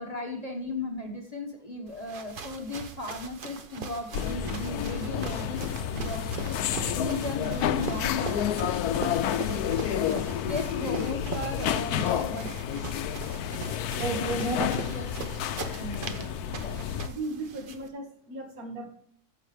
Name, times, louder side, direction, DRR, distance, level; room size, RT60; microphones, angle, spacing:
voice 1, 0.0-5.7 5.9-6.6 6.9-8.8 9.4-12.5 14.1-15.0 15.7-16.2 16.6-17.0, left 2 dB, 30° left, 2 dB, 1.2 m, -36 dB
sound 1, 1.9-17.9, right 4 dB, 40° right, 1.0 m, -40 dB
sound 2, 4.1-17.1, left 10 dB, 80° left, 1.1 m, -30 dB
voice 2, 14.0-14.7 16.0-16.5 17.1-18.9, right 2 dB, 70° right, 3 dB, 2.1 m, -35 dB
14.5 x 6.4 x 3.2 m, 0.66 s
omnidirectional pair, 1.6 m